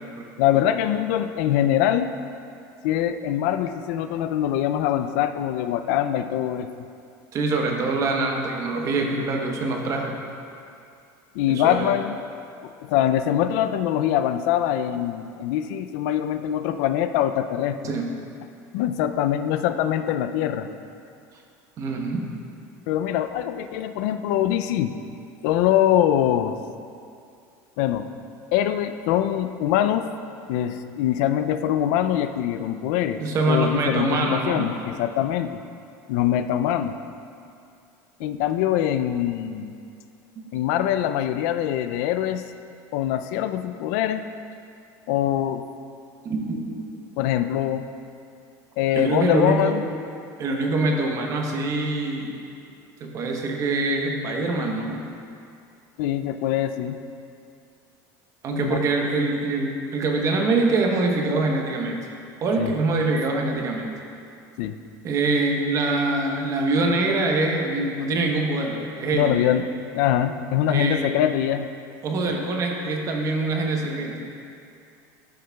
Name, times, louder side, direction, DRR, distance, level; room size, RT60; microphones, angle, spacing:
voice 1, 0.4-2.1 2.8-6.7 11.3-12.1 12.8-17.9 18.7-20.7 22.9-24.9 25.4-26.6 27.8-28.1 28.5-30.1 30.5-33.2 33.5-35.6 36.1-37.0 38.2-39.8 40.5-42.4 42.9-44.2 45.1-45.6 47.2-47.9 48.8-49.8 56.0-57.0 58.5-59.0 62.6-62.7 64.6-64.8 69.1-69.7 69.9-71.7 72.2-72.4, left 11 dB, 75° left, 9 dB, 0.4 m, -23 dB
voice 2, 7.3-10.1 11.5-11.9 17.8-18.2 21.8-22.3 33.2-34.6 40.4-40.5 46.2-46.9 48.9-49.8 50.4-52.3 53.0-55.0 58.4-62.1 62.4-63.9 65.0-69.4 70.7-71.1 72.0-74.2, right 2 dB, 35° right, 1 dB, 0.9 m, -24 dB
12.5 x 6.4 x 2.3 m, 2.5 s
cardioid pair, 145°, 9 cm